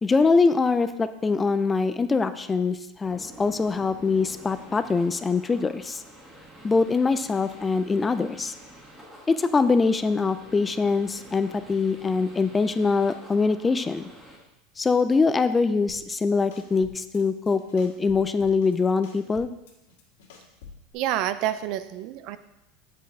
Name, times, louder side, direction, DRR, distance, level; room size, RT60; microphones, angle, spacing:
voice 1, 0.0-6.0 6.6-8.5 9.3-14.1 14.8-19.5, left 4 dB, 15° left, 11 dB, 0.3 m, -23 dB
sound 1, 3.0-14.4, right 1 dB, 10° right, 2.1 m, -48 dB
sound 2, 15.9-16.2 16.5-17.2 17.5-18.8 19.0-20.9, left 5 dB, 80° left, 1.7 m, -48 dB
voice 2, 20.9-22.4, right 12 dB, 55° right, 12 dB, 0.4 m, -28 dB
8.0 x 4.6 x 4.7 m, 0.90 s
supercardioid pair, 135°, 0 cm